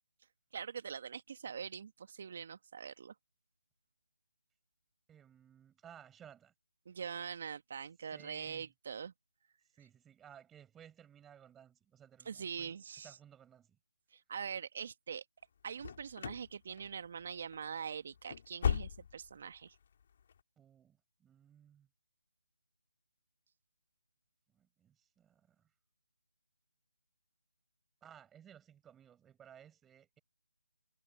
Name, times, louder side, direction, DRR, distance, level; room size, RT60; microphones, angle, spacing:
voice 1, 0.5-3.1 6.8-9.1 12.2-13.2 14.1-15.2 15.6-19.7, right 7 dB, 45° right, 1.5 m, -43 dB
voice 2, 5.1-6.5 8.1-8.7 9.8-12.7 13.0-13.8 20.6-21.9 24.5-25.7 28.0-30.2, right 9 dB, 10° right, 5.3 m, -58 dB
sound 1, 15.8-16.5 16.8-17.2 17.5-17.7 18.1-19.4 19.7-19.8 20.3-20.4, left 7 dB, 40° left, 4.1 m, -36 dB
figure-of-eight pair, 160°, 0 cm